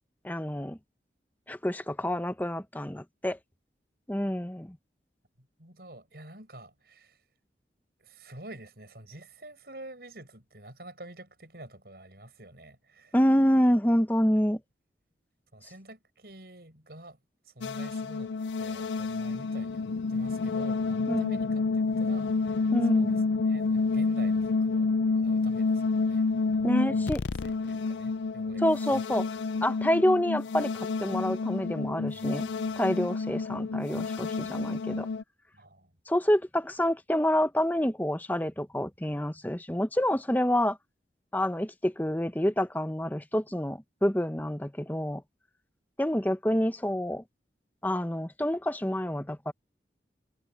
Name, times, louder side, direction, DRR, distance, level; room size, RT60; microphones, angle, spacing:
voice 1, 0.2-0.8 1.5-3.4 4.1-4.8 13.1-14.6 21.1-21.4 22.7-23.2 26.6-27.2 28.6-29.3 29.6-32.5 32.8-35.1 36.1-40.8 41.3-45.2 46.0-47.2 47.8-49.5, equal, 10° left, 0.9 m, -27 dB
voice 2, 5.4-7.2 8.0-13.2 15.5-17.2 17.5-18.3 18.6-25.8 26.1-26.2 26.8-27.1 27.4-29.0 32.0-32.9 35.5-35.9, right 1 dB, 60° right, 6.8 m, -48 dB
sound 1, 17.6-35.2, left 4 dB, 85° left, 0.5 m, -29 dB
head